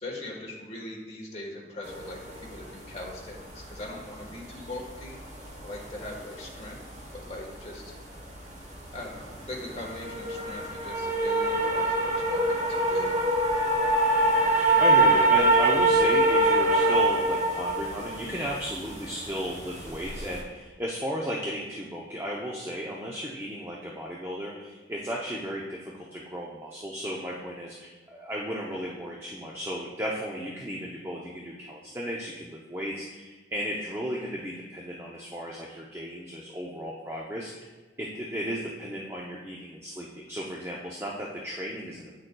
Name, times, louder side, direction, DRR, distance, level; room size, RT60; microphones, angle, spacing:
voice 1, 0.0-5.2 5.6-6.8 7.1-8.0 8.9-13.1, left 1 dB, 35° left, -2 dB, 1.3 m, -40 dB
sound 1, 1.8-20.4, right 2 dB, 40° right, 0.9 m, -25 dB
voice 2, 14.5-37.7 38.0-42.1, equal, 15° right, -3 dB, 0.5 m, -34 dB
9.1 x 6.3 x 2.2 m, 1.2 s
head